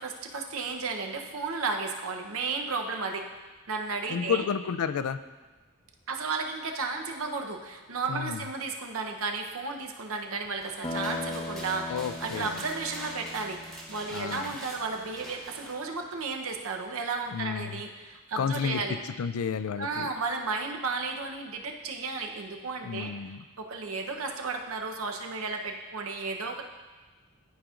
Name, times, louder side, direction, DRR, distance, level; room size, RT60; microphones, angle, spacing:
voice 1, 0.0-3.3 3.7-4.5 6.1-13.6 13.9-19.0 19.8-26.6, right 4 dB, 80° right, 3 dB, 0.7 m, -33 dB
voice 2, 4.1-5.2 8.1-8.4 11.9-12.6 14.1-14.5 17.3-17.8 18.4-20.1 22.8-23.4, left 7 dB, 90° left, 12 dB, 0.4 m, -31 dB
sound 1, 10.4-15.8, equal, ahead, 1.0 m, -45 dB
sound 2, 10.8-15.1, left 2 dB, 25° left, 0.6 m, -39 dB
12.0 x 5.1 x 2.4 m, 1.3 s
head